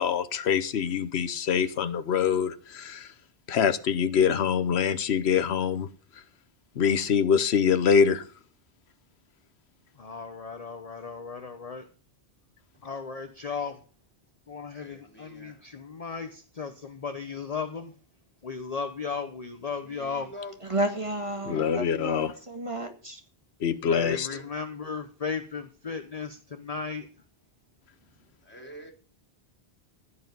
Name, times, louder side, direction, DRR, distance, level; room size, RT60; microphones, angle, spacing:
voice 1, 0.0-3.1 3.5-5.9 6.8-8.3 21.5-22.3 23.6-24.3, left 7 dB, 90° left, 1.1 m, -24 dB
voice 2, 10.0-11.9 12.8-13.8 14.5-17.9 18.4-20.3 23.9-27.1, left 5 dB, 40° left, 1.0 m, -35 dB
voice 3, 14.7-15.7 19.8-20.9 21.3-22.2 24.3-24.5 28.4-28.9, equal, 10° left, 3.6 m, -46 dB
voice 4, 20.6-23.2, right 1 dB, 30° right, 1.9 m, -31 dB
15.5 x 8.7 x 5.4 m
omnidirectional pair, 1.1 m